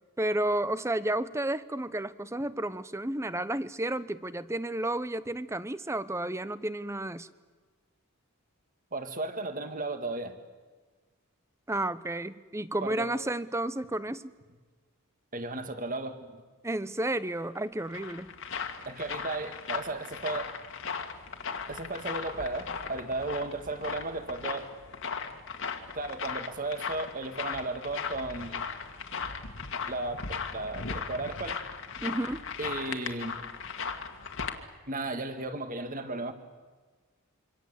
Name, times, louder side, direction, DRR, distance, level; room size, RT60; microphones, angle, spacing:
voice 1, 0.2-7.3 11.7-14.3 16.6-18.3 32.0-32.5, right 1 dB, 10° right, 15 dB, 0.7 m, -32 dB
voice 2, 8.9-10.4 12.8-13.1 15.3-16.4 18.9-20.5 21.7-24.7 25.9-28.7 29.9-31.6 32.6-33.4 34.9-36.3, right 2 dB, 40° right, 8 dB, 2.0 m, -35 dB
sound 1, 17.5-34.6, left 5 dB, 60° left, 2.0 m, -37 dB
26.5 x 25.0 x 8.2 m, 1.4 s
head